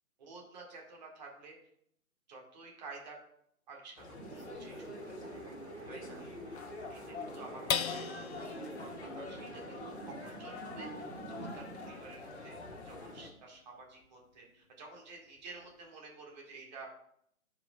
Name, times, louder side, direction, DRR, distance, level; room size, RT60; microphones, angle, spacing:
voice 1, 0.2-1.6 2.3-3.2 3.7-5.3 5.9-6.2 6.9-12.6 12.8-16.9, right 3 dB, 30° right, -1 dB, 1.8 m, -51 dB
sound 1, 4.0-13.3, left 3 dB, 50° left, 1.2 m, -46 dB
sound 2, 4.2-11.9, right 3 dB, 50° right, 2.3 m, -47 dB
sound 3, 7.7-14.4 14.9-15.0 15.4-15.9, left 7 dB, 70° left, 0.6 m, -42 dB
13.5 x 5.0 x 2.3 m, 0.71 s
figure-of-eight pair, 135°, 44 cm